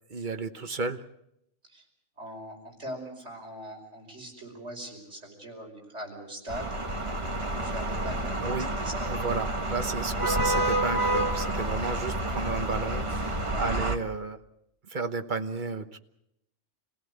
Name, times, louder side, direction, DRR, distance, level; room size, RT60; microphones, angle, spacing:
voice 1, 0.1-1.0 8.4-8.7 9.1-14.4 14.9-16.0, right 4 dB, 45° right, 9 dB, 1.2 m, -33 dB
voice 2, 2.2-6.7 7.5-8.3 8.6-9.1 10.2-10.7 13.5-13.9, equal, 70° right, 0 dB, 5.6 m, -41 dB
sound 1, 6.5-14.0, right 1 dB, 25° right, 1.5 m, -29 dB
27.0 x 17.0 x 8.0 m, 0.80 s
omnidirectional pair, 1.2 m